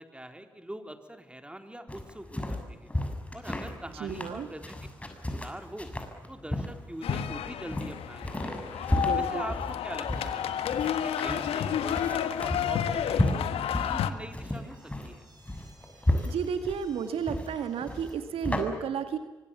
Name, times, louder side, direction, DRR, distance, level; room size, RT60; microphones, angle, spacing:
voice 1, 0.0-2.9 3.3-4.8 5.2-5.9 6.3-8.7 9.2-10.4 10.8-13.5 13.8-15.2, right 1 dB, 10° right, 6 dB, 4.0 m, -43 dB
sound 1, 1.9-18.6, left 1 dB, 10° left, 6.8 m, -33 dB
voice 2, 4.0-4.5 8.9-9.4 16.2-19.2, right 7 dB, 65° right, 9 dB, 2.0 m, -32 dB
sound 2, 7.0-14.1, left 9 dB, 65° left, 1.6 m, -31 dB
sound 3, 10.0-12.1 14.3-18.2, right 2 dB, 40° right, 7.5 m, -55 dB
28.0 x 24.0 x 7.2 m, 1.2 s
hypercardioid pair, 40°, 11 cm